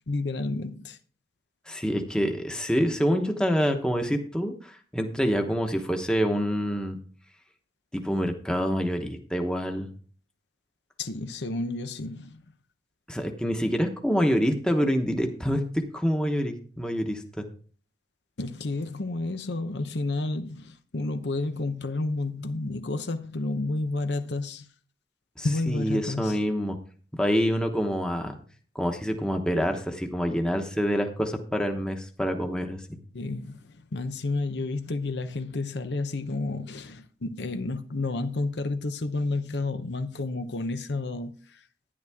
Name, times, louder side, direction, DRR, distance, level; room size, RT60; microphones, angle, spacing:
voice 1, 0.1-1.0 11.0-12.4 18.4-24.7 25.4-26.4 33.1-41.6, left 2 dB, 90° left, 0.9 m, -31 dB
voice 2, 1.7-7.0 7.9-9.9 13.1-17.4 25.4-26.8 27.1-28.4 28.7-33.0, equal, 5° left, 1.0 m, -26 dB
11.0 x 10.5 x 3.5 m
head